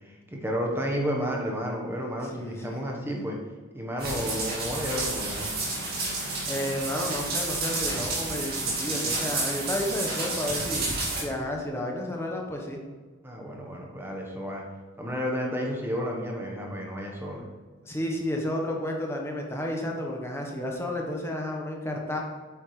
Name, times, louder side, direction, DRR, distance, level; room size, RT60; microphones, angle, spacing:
voice 1, 0.0-3.4 3.7-5.5 13.2-14.6 15.0-17.4, equal, 10° right, 0 dB, 1.2 m, -31 dB
voice 2, 2.3-2.8 6.5-10.9 11.2-12.8 17.8-22.2, left 1 dB, 10° left, 0 dB, 1.1 m, -31 dB
sound 1, 4.0-11.2, right 2 dB, 45° right, 2.2 m, -30 dB
8.4 x 7.3 x 3.3 m, 1.5 s
head